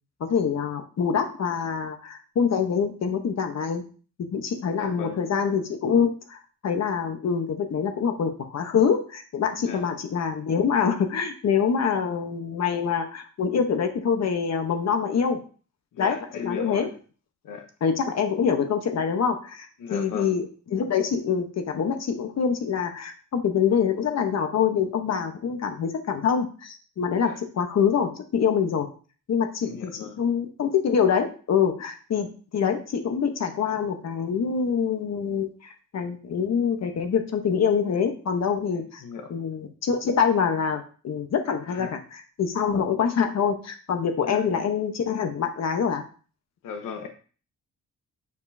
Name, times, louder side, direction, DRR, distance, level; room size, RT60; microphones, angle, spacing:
voice 1, 0.2-3.8 4.3-15.4 16.0-16.9 17.8-20.4 20.7-28.9 29.3-39.0 39.3-41.9 42.4-46.0, left 6 dB, 55° left, 6 dB, 1.0 m, -25 dB
voice 2, 4.7-5.2 9.7-9.9 15.9-16.9 17.4-17.7 19.8-20.4 27.2-27.4 29.6-30.1 38.7-39.3 41.7-41.9 44.2-44.5 46.6-47.1, left 6 dB, 85° left, 5 dB, 0.9 m, -37 dB
7.0 x 5.3 x 2.7 m, 0.39 s
wide cardioid pair, 140°, 31 cm